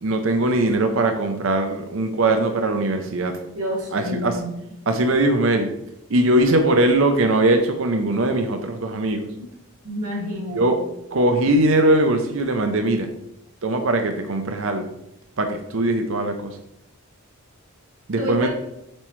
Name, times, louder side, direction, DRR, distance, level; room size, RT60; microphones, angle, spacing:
voice 1, 0.0-3.4 3.9-4.3 4.9-5.7 6.1-9.3 10.5-10.8 11.1-13.1 13.6-14.9 15.4-16.6 18.1-18.5, right 1 dB, 60° right, 5 dB, 0.6 m, -20 dB
voice 2, 3.5-4.5 9.8-10.7 18.2-18.5, equal, 85° right, -4 dB, 2.2 m, -28 dB
7.5 x 4.4 x 3.1 m, 0.83 s
head